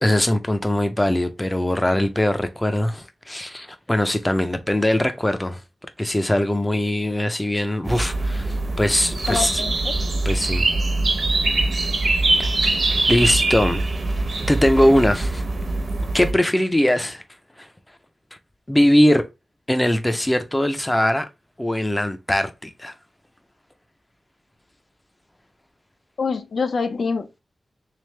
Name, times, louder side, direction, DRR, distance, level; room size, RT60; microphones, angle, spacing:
voice 1, 0.0-5.6 6.0-9.5 10.2-10.7 13.1-13.8 14.4-15.4 16.1-17.2 17.6-17.7 18.7-19.3 19.7-21.3 21.6-22.9, left 1 dB, 10° left, 0.4 m, -21 dB
sound 1, 7.9-16.3, right 2 dB, 50° right, 0.8 m, -23 dB
voice 2, 9.3-9.9 26.2-27.4, left 5 dB, 70° left, 0.5 m, -25 dB
3.5 x 3.3 x 3.1 m
wide cardioid pair, 135°, 0 cm